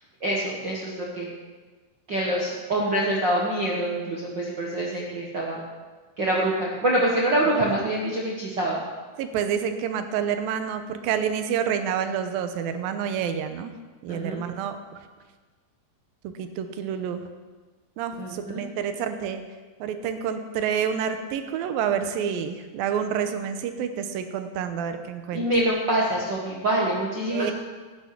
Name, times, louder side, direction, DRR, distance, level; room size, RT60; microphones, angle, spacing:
voice 1, 0.2-1.3 2.1-5.6 6.2-8.8 14.1-14.4 18.2-18.6 25.3-27.5, right 1 dB, 55° right, -4 dB, 1.3 m, -25 dB
voice 2, 9.2-13.7 14.0-14.8 16.2-17.2 18.0-19.4 19.8-25.4 27.3-27.5, right 8 dB, 75° right, 8 dB, 2.5 m, -28 dB
13.5 x 9.6 x 6.0 m, 1.4 s
omnidirectional pair, 4.5 m